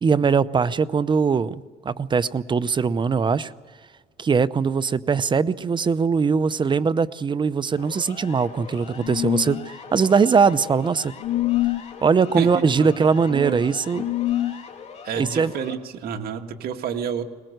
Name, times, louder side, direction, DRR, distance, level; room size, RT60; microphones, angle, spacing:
voice 1, 0.0-3.5 4.2-11.1 12.0-14.0 15.2-15.5, right 5 dB, 30° right, 15 dB, 0.7 m, -21 dB
Siren, 7.8-15.8, left 6 dB, 40° left, 2.8 m, -42 dB
sound 1, 9.0-9.7 11.2-11.8 13.9-14.5, left 15 dB, 80° left, 1.6 m, -24 dB
voice 2, 12.4-13.7 15.0-17.2, right 8 dB, 65° right, 5 dB, 1.8 m, -30 dB
22.0 x 19.5 x 8.0 m, 1.5 s
cardioid pair, 110°, 17 cm